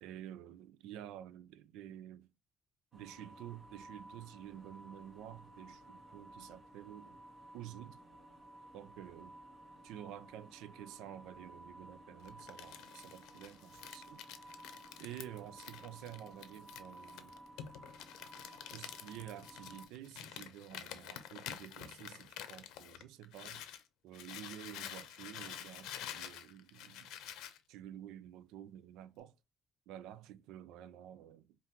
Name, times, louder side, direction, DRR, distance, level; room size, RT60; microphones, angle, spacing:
voice 1, 0.0-2.3 2.9-7.2 7.5-8.0 8.7-9.4 9.8-14.2 15.0-17.4 18.7-23.6 24.0-27.1 27.7-29.4 29.9-31.5, right 11 dB, 90° right, 0.4 m, -50 dB
sound 1, 2.9-19.9, right 1 dB, 45° right, 1.7 m, -55 dB
Crumpling crinkling, 12.2-23.8 24.1-27.6, left 10 dB, 85° left, 0.6 m, -48 dB
5.1 x 2.5 x 2.8 m
cardioid pair, 80°, 0 cm